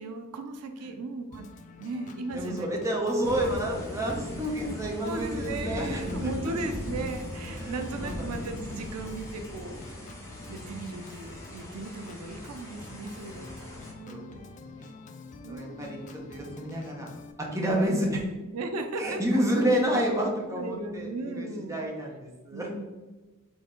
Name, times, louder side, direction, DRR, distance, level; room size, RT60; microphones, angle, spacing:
voice 1, 0.0-1.5 1.8-2.7 5.0-10.1 10.5-14.5 15.4-16.3 17.8-18.3 18.5-20.1 20.5-21.9 22.5-22.8, right 2 dB, 80° right, 6 dB, 0.5 m, -37 dB
Organ, 1.3-17.3, left 4 dB, 35° left, 0.4 m, -47 dB
voice 2, 2.3-6.3 7.6-8.2 14.1-14.2 14.6-15.0 15.5-15.9 16.1-17.1 17.4-18.2 19.0-21.1 21.4-22.7, equal, 15° right, -1 dB, 0.7 m, -29 dB
sound 1, 3.2-13.9, left 1 dB, 15° left, 1.0 m, -39 dB
4.0 x 3.3 x 3.7 m, 1.2 s
head